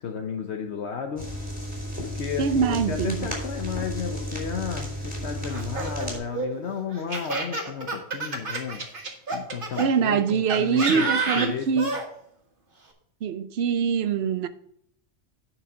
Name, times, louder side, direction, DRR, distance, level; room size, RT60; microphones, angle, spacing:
voice 1, 0.0-1.2 2.0-11.9, left 7 dB, 70° left, 1.1 m, -33 dB
sound 1, 1.2-6.2, equal, 5° right, 3.3 m, -33 dB
voice 2, 2.4-3.3 9.8-11.9 13.2-14.5, right 6 dB, 65° right, 0.9 m, -24 dB
Laughter, 5.5-9.9 10.5-12.0, right 3 dB, 45° right, 1.8 m, -29 dB
9.4 x 5.9 x 5.0 m
omnidirectional pair, 1.2 m